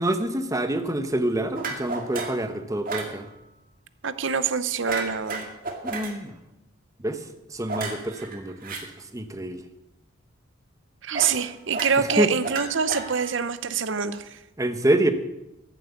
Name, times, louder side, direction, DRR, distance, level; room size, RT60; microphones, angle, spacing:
voice 1, 0.0-3.3 5.8-6.3 7.0-9.6 12.0-12.3 14.6-15.1, right 1 dB, 15° right, 8 dB, 1.0 m, -27 dB
sound 1, 1.5-2.4 2.9-3.1 4.9-6.1 7.7-8.8 11.1-11.4 11.7-13.4, right 3 dB, 40° right, 2.2 m, -32 dB
voice 2, 4.0-5.5 11.0-14.4, right 6 dB, 65° right, 13 dB, 0.8 m, -25 dB
14.5 x 7.6 x 8.3 m, 0.95 s
head